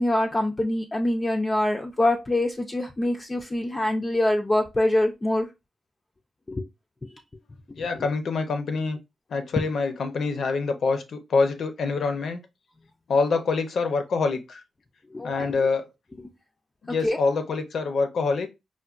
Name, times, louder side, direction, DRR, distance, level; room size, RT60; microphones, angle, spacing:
voice 1, 0.0-5.5 6.5-6.7 7.8-7.9 15.1-15.5 17.0-17.2, left 1 dB, 25° left, 0.4 m, -24 dB
voice 2, 7.7-9.0 9.3-12.4 13.1-14.6 15.2-15.9 16.8-18.5, left 4 dB, 70° left, 0.6 m, -25 dB
4.4 x 2.2 x 2.4 m
cardioid pair, 80°, 0 cm